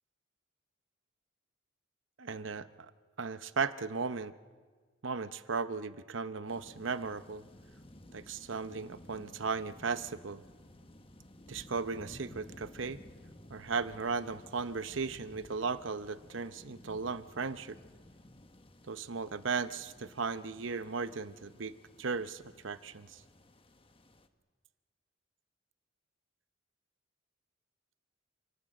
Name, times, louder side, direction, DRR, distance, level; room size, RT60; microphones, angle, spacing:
voice 1, 2.2-2.7 3.2-4.3 5.0-7.4 8.1-10.4 11.5-13.0 13.5-17.8 18.9-23.2, right 4 dB, 75° right, 13 dB, 0.8 m, -36 dB
sound 1, 6.5-24.3, left 1 dB, 30° left, 1.2 m, -55 dB
28.5 x 19.0 x 7.6 m, 1.5 s
head